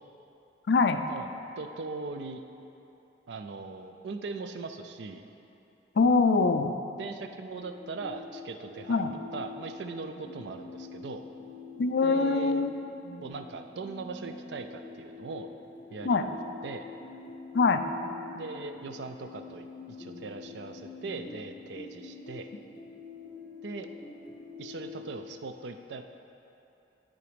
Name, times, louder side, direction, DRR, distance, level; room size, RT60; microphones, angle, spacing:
voice 1, 0.7-1.0 6.0-6.8 8.9-9.1 11.8-12.7 16.0-16.3 17.5-17.8, left 4 dB, 65° left, 8 dB, 0.4 m, -23 dB
voice 2, 1.6-2.4 3.3-5.3 7.0-9.0 9.3-11.3 12.0-12.6 13.2-15.5 15.9-16.4 16.6-16.8 18.3-22.5 23.6-23.9 24.6-26.0, right 4 dB, 70° right, 7 dB, 0.4 m, -40 dB
sound 1, 7.6-25.1, left 4 dB, 25° left, 1.0 m, -45 dB
9.8 x 3.9 x 5.0 m, 2.9 s
head